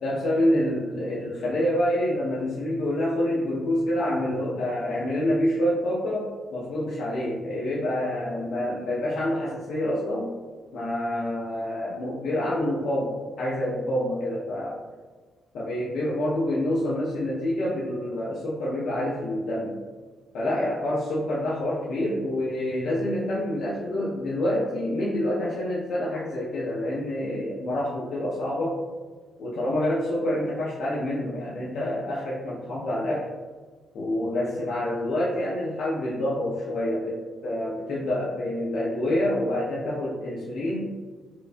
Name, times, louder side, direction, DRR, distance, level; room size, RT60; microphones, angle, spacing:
voice 1, 0.0-10.4 10.7-14.8 15.5-19.7 20.3-28.8 29.4-33.3 33.9-40.9, left 1 dB, 70° left, -6 dB, 0.6 m, -27 dB
4.6 x 2.2 x 2.5 m, 1.4 s
cardioid pair, 135°, 0 cm